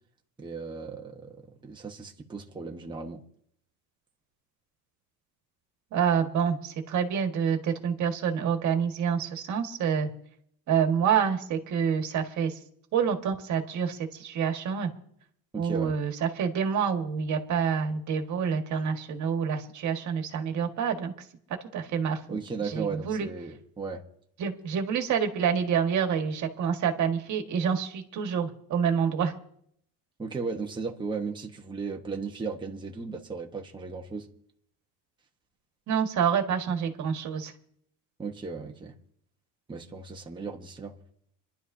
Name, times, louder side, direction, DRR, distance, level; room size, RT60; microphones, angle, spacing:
voice 1, 0.4-3.2 15.5-16.0 22.3-24.0 30.2-34.3 38.2-38.9 39.7-41.0, right 4 dB, 10° right, 1.1 m, -36 dB
voice 2, 5.9-10.1 10.7-12.6 12.9-14.9 15.6-21.1 21.7-22.2 22.6-23.3 24.4-29.3 35.9-37.5, right 7 dB, 45° right, 1.7 m, -27 dB
26.0 x 11.5 x 2.7 m
cardioid pair, 130°, 40 cm